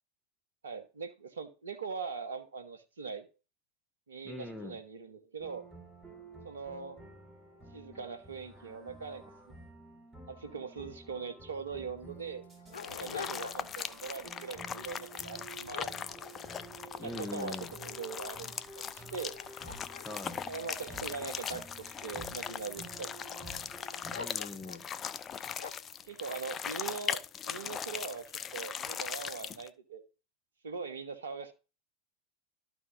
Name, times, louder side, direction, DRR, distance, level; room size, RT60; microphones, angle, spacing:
voice 1, 0.6-3.2 4.1-5.6 6.4-7.0 7.7-9.2 10.3-12.4 12.9-16.2 17.0-19.4 20.5-23.4 26.0-28.2 28.5-30.0 30.6-31.5, right 5 dB, 80° right, 9 dB, 1.2 m, -41 dB
voice 2, 4.2-4.8 17.0-17.7 20.0-20.4 24.1-24.8, left 2 dB, 10° left, 5 dB, 1.0 m, -42 dB
sound 1, 5.4-24.2, right 2 dB, 15° right, 3.6 m, -51 dB
Dog, 11.2-11.3 11.5-11.6 12.2-13.9 14.3-14.6 15.2-16.7 17.1-18.0 18.6-18.7 19.2-21.5 22.2-22.8 24.1-24.9 25.6-26.0, left 6 dB, 80° left, 0.7 m, -46 dB
sound 2, 12.7-29.7, left 8 dB, 30° left, 0.5 m, -40 dB
12.5 x 4.2 x 3.7 m, 0.32 s
figure-of-eight pair, 85°, 0 cm